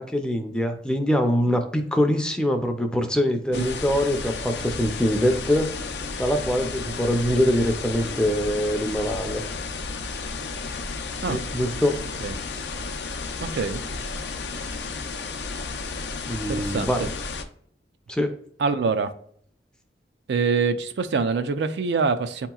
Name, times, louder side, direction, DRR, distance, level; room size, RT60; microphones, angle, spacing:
voice 1, 0.0-5.7 6.2-9.4 11.3-12.0 16.3-17.1 18.1-18.3, equal, 5° left, 0.4 m, -23 dB
sound 1, 3.5-17.4, left 4 dB, 75° left, 0.5 m, -33 dB
voice 2, 13.4-13.8 16.5-17.1 18.6-19.1 20.3-22.5, right 4 dB, 75° right, 0.4 m, -25 dB
7.8 x 2.9 x 2.3 m
head